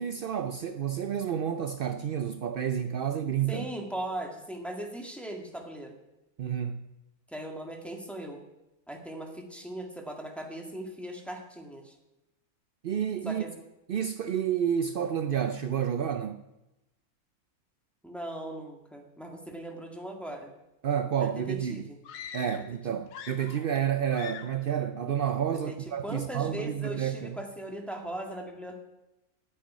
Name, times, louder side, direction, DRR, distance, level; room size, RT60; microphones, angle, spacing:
voice 1, 0.0-3.7 6.4-6.8 12.8-13.4 13.9-16.4 20.8-21.9 22.3-27.4, right 8 dB, 70° right, 0.5 m, -30 dB
voice 2, 3.5-6.0 7.3-8.4 8.9-12.0 13.2-13.5 18.0-20.5 21.2-22.0 25.7-25.8 26.0-28.8, right 1 dB, ahead, 1.7 m, -39 dB
sound 1, 22.0-22.8 23.1-23.8 24.1-24.7, left 8 dB, 85° left, 1.4 m, -43 dB
9.4 x 9.2 x 9.5 m
omnidirectional pair, 1.6 m